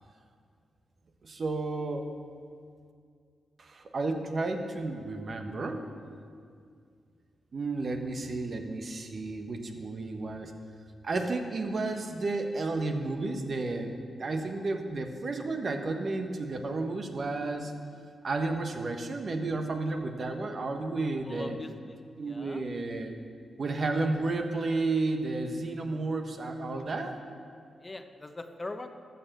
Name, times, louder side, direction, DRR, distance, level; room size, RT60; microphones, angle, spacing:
voice 1, 1.2-2.1 3.6-5.8 7.5-10.5 11.0-17.7 18.2-21.6 22.2-23.2 23.6-27.2, right 3 dB, 55° right, 5 dB, 1.3 m, -32 dB
voice 2, 21.2-22.6 27.8-28.9, left 2 dB, 30° left, 7 dB, 0.9 m, -41 dB
13.5 x 6.9 x 6.7 m, 2.2 s
cardioid pair, 60°, 0 cm